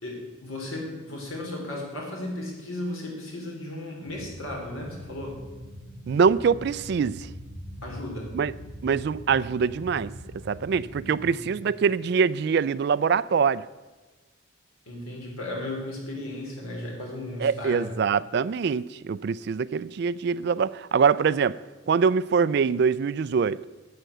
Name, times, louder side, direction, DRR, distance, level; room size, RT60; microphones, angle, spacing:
voice 1, 0.0-5.4 7.8-8.3 11.4-11.6 14.9-18.0, left 1 dB, 85° left, 3.5 m, -35 dB
sound 1, 4.0-11.3, equal, 55° left, 3.2 m, -42 dB
voice 2, 6.1-7.3 8.3-8.5 8.8-10.1 10.5-13.6 17.4-21.6 21.9-23.6, right 6 dB, 50° right, 0.3 m, -24 dB
11.0 x 7.8 x 6.7 m
head